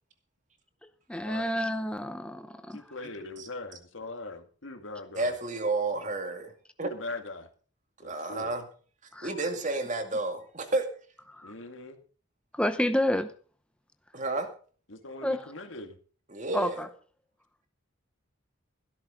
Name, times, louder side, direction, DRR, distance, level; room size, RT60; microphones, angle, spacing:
voice 1, 1.1-2.8 9.1-9.3 11.3-11.5 12.5-13.3 15.2-15.5 16.5-16.9, left 1 dB, 5° left, 9 dB, 0.7 m, -29 dB
voice 2, 2.7-5.4 6.8-7.5 8.0-8.5 11.4-12.0 14.9-16.0, left 2 dB, 70° left, 6 dB, 2.1 m, -41 dB
voice 3, 5.1-6.5 6.8-6.9 8.0-8.6 9.2-10.9 14.1-14.5 16.3-16.8, right 2 dB, 35° right, 6 dB, 2.2 m, -31 dB
15.5 x 13.0 x 3.9 m, 0.41 s
head